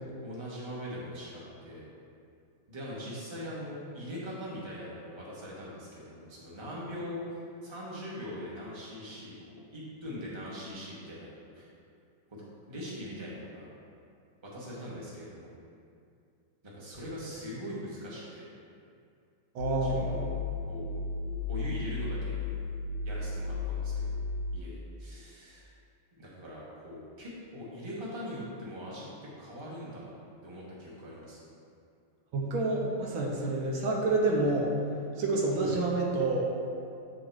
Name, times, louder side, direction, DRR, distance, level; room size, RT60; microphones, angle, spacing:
voice 1, 0.2-1.9 2.7-11.7 12.3-12.4 12.7-13.7 14.4-15.5 16.6-18.4 19.8-20.3 20.7-21.0 21.5-22.5 23.0-24.2 24.5-25.7 26.2-30.1 30.4-31.4 35.6-35.8, equal, 20° right, -6 dB, 1.0 m, -41 dB
voice 2, 19.5-20.3 32.3-34.7 35.2-36.4, right 2 dB, 80° right, -2 dB, 1.7 m, -28 dB
sound 1, 19.6-24.6, left 4 dB, 75° left, 1.2 m, -34 dB
8.9 x 3.0 x 4.6 m, 2.4 s
omnidirectional pair, 2.2 m